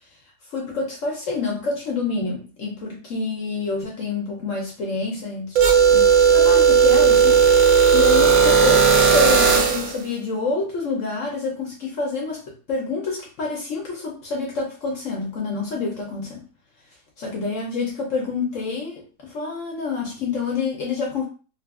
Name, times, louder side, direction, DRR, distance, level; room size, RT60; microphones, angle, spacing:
voice 1, 0.5-5.6 5.9-7.6 7.9-12.4 12.7-16.4 17.2-21.3, left 4 dB, 60° left, -1 dB, 0.8 m, -27 dB
sound 1, 5.6-10.0, right 6 dB, 70° right, 0.9 m, -15 dB
2.9 x 2.4 x 2.3 m, 0.35 s
omnidirectional pair, 1.8 m